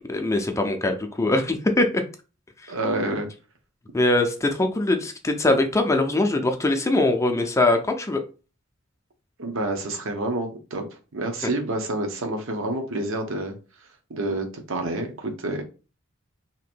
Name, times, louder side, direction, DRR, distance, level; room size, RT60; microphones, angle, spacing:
voice 1, 0.1-2.0 2.6-2.7 3.9-8.2 11.4-11.5, left 2 dB, 15° left, 5 dB, 0.4 m, -22 dB
voice 2, 2.7-3.3 9.4-10.8 11.1-13.5 14.1-15.6, right 2 dB, 70° right, 4 dB, 0.8 m, -28 dB
2.8 x 2.6 x 4.3 m, 0.34 s
head